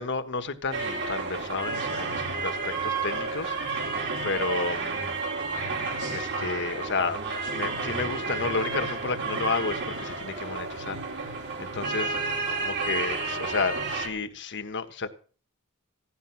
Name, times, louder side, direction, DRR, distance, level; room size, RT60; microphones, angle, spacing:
voice 1, 0.0-3.9 4.2-5.0 6.1-7.2 7.5-12.2 12.6-15.1, left 4 dB, 55° left, 1.4 m, -32 dB
sound 1, 0.7-14.1, right 4 dB, 55° right, 3.5 m, -31 dB
16.0 x 11.5 x 5.9 m
head